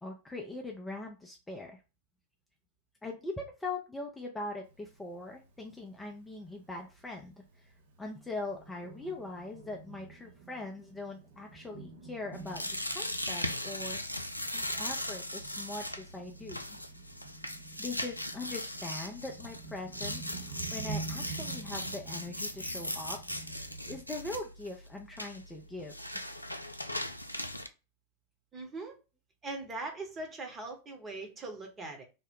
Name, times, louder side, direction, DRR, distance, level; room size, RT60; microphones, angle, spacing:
voice 1, 0.0-1.8 3.0-7.4 8.0-16.8 17.8-23.2 23.5-25.9, left 2 dB, 10° left, 1 dB, 0.5 m, -41 dB
Thunder, 4.7-24.0, right 5 dB, 55° right, 0.7 m, -48 dB
sound 1, 12.3-27.7, left 1 dB, 85° left, 0.3 m, -38 dB
voice 2, 28.5-29.0 29.4-32.0, right 2 dB, 20° right, 3 dB, 1.0 m, -41 dB
2.8 x 2.1 x 3.6 m, 0.29 s
figure-of-eight pair, 90°, 0 cm